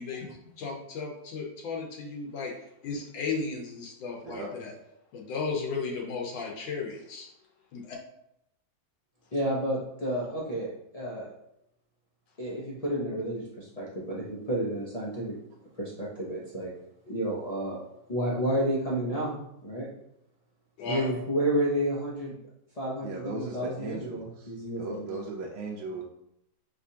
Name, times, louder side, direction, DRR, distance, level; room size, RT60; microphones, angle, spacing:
voice 1, 0.0-2.5 2.8-4.7 5.1-7.3 7.7-8.0 20.8-21.1, left 4 dB, 80° left, 1 dB, 1.5 m, -35 dB
voice 2, 4.2-4.7 23.0-26.0, right 3 dB, 75° right, -1 dB, 1.2 m, -38 dB
voice 3, 9.3-11.3 12.4-15.4 15.7-16.7 17.1-17.8 18.1-19.4 19.6-19.9 20.8-22.3 22.8-25.1, right 1 dB, 65° left, -6 dB, 0.3 m, -31 dB
4.9 x 3.2 x 2.8 m, 0.78 s
omnidirectional pair, 2.1 m